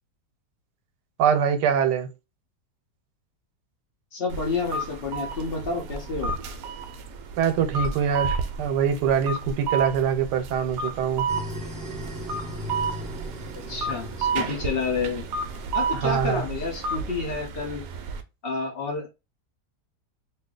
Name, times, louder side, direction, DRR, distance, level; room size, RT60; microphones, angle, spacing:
voice 1, 1.2-2.1 7.4-11.3 15.9-16.4, right 7 dB, 85° right, 1.2 m, -24 dB
voice 2, 4.1-6.3 13.5-15.2 15.7-17.8 18.4-19.1, left 4 dB, 40° left, 0.9 m, -29 dB
sound 1, 4.3-18.2, right 4 dB, 70° right, 0.9 m, -32 dB
sound 2, 11.3-16.1, left 1 dB, 15° right, 1.2 m, -38 dB
2.8 x 2.7 x 3.8 m
omnidirectional pair, 1.8 m